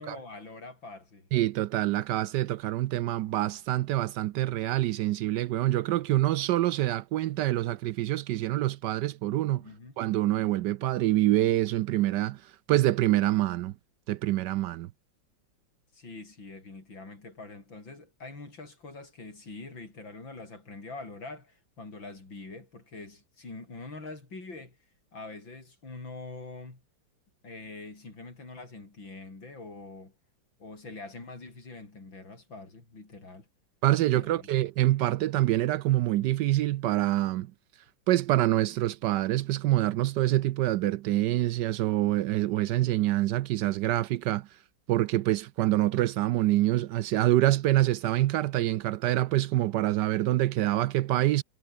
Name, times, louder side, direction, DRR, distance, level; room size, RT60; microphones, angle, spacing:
voice 1, 0.0-1.3 9.6-9.9 15.9-24.8 25.1-26.8 27.4-30.1 30.6-33.5 34.2-34.5, left 3 dB, 75° left, 6.7 m, -44 dB
voice 2, 1.3-9.6 10.0-13.7 14.1-14.9 33.8-37.5 38.1-44.5 44.9-51.4, right 15 dB, 75° right, 1.1 m, -26 dB
omnidirectional pair, 2.1 m